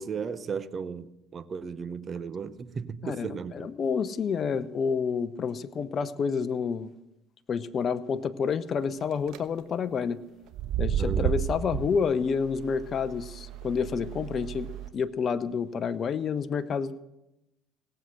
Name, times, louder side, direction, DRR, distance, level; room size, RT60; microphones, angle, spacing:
voice 1, 0.0-3.7 11.0-11.4, right 6 dB, 40° right, 0.9 m, -35 dB
voice 2, 3.0-6.9 7.5-10.2 10.8-17.0, left 6 dB, 45° left, 0.8 m, -29 dB
sound 1, 9.0-9.4 10.5-14.9, right 9 dB, 65° right, 1.1 m, -32 dB
18.0 x 7.7 x 8.1 m
supercardioid pair, 75°, 0 cm